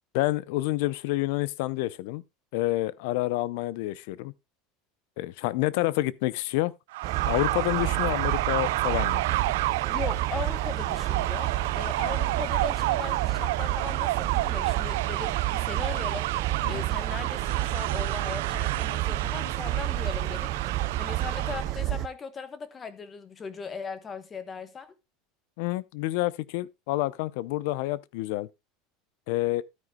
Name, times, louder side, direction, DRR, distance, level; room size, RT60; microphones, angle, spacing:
voice 1, 0.1-2.2 2.5-4.3 5.2-6.7 7.3-9.2 16.6-16.8 25.6-28.5 29.3-29.6, left 18 dB, 60° left, 0.6 m, -28 dB
sound 1, 6.9-21.7, right 17 dB, 80° right, 0.4 m, -30 dB
sound 2, 7.0-22.1, right 14 dB, 35° right, 0.5 m, -30 dB
voice 2, 9.9-16.3 16.7-20.5 21.0-24.9, left 5 dB, 15° left, 1.1 m, -38 dB
13.0 x 9.2 x 2.3 m
supercardioid pair, 180°, 0 cm